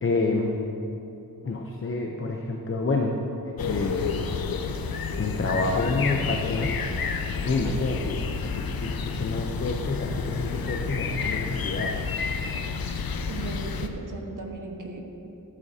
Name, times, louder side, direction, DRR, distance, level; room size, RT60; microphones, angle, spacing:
voice 1, 0.0-0.6 1.4-3.2 3.4-4.1 5.2-6.8 7.4-8.2 8.5-12.0, left 3 dB, 35° left, 1 dB, 0.7 m, -28 dB
sound 1, 3.6-13.9, left 5 dB, 75° left, 0.7 m, -30 dB
voice 2, 13.3-15.0, right 3 dB, 60° right, 1 dB, 1.4 m, -37 dB
13.5 x 12.5 x 2.8 m, 2.9 s
wide cardioid pair, 120°, 36 cm